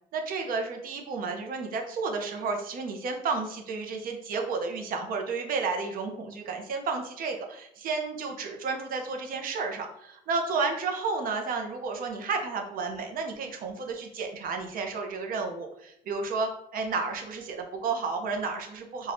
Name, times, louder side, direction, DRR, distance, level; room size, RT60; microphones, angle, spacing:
voice 1, 0.1-19.1, right 4 dB, 60° right, 3 dB, 0.6 m, -32 dB
2.6 x 2.2 x 3.3 m, 0.75 s
cardioid pair, 110°, 17 cm